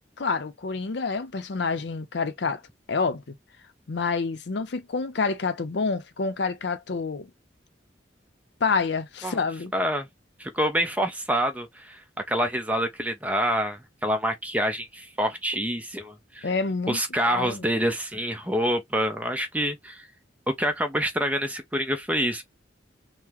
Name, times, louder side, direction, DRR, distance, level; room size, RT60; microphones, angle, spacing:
voice 1, 0.2-2.6 2.9-3.3 3.9-7.3 8.6-9.7 16.4-17.0 17.3-17.7, left 4 dB, 70° left, 0.6 m, -28 dB
voice 2, 9.7-10.1 10.4-16.5 16.9-20.1 20.5-22.4, equal, 10° right, 0.5 m, -27 dB
3.7 x 2.1 x 3.0 m
head